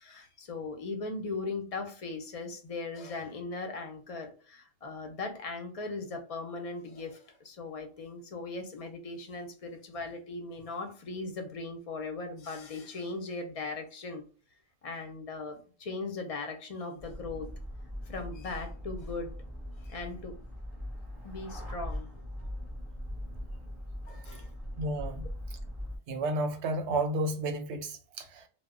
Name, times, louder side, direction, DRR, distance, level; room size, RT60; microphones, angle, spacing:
voice 1, 0.0-14.2 14.8-17.5 18.0-19.3 19.8-20.4 21.2-22.1 22.4-22.5 24.1-24.5, left 3 dB, 50° left, 0.4 m, -39 dB
sound 1, 17.0-26.0, equal, 25° right, 0.8 m, -41 dB
voice 2, 24.8-25.6 26.1-28.5, right 2 dB, 85° right, 0.9 m, -32 dB
2.1 x 2.0 x 3.5 m
omnidirectional pair, 1.1 m